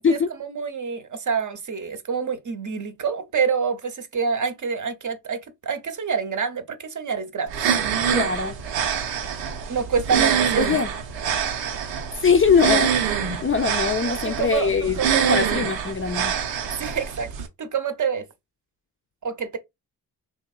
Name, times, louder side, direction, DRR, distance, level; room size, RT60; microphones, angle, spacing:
voice 1, 0.1-7.7 9.7-10.6 14.0-15.5 16.8-17.3 17.6-18.3 19.2-19.6, right 6 dB, 45° right, 0.7 m, -27 dB
sound 1, 7.5-17.5, right 8 dB, 85° right, 0.7 m, -25 dB
voice 2, 8.1-8.6 10.6-10.9 12.2-15.0 15.3-16.3, left 5 dB, 30° left, 0.5 m, -22 dB
2.8 x 2.7 x 2.3 m
supercardioid pair, 40°, 44 cm